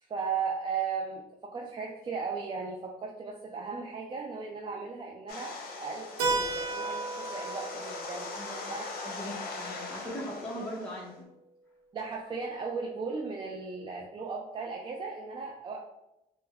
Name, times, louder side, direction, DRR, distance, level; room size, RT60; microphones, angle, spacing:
voice 1, 0.0-5.5 5.8-8.3 8.7-8.8 11.9-15.8, right 5 dB, 30° right, 0 dB, 0.4 m, -36 dB
sound 1, 5.3-11.2, left 3 dB, 60° left, 0.7 m, -41 dB
Keyboard (musical), 6.2-10.7, right 3 dB, 85° right, 0.9 m, -35 dB
voice 2, 8.4-8.7 9.0-11.1, equal, 5° left, -5 dB, 0.7 m, -39 dB
3.2 x 2.1 x 3.4 m, 0.92 s
cardioid pair, 110°, 17 cm